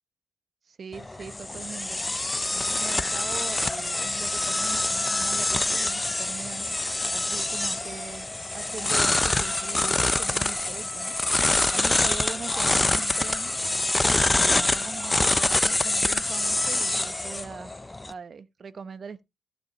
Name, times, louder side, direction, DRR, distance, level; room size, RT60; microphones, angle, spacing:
voice 1, 0.7-2.0 2.5-6.6 7.1-8.3 8.5-13.6 14.1-17.7 18.1-19.2, right 5 dB, 45° right, 0.9 m, -41 dB
sound 1, 0.9-18.1, left 2 dB, 15° left, 0.7 m, -25 dB
14.5 x 5.2 x 4.1 m
cardioid pair, 90°, 0 cm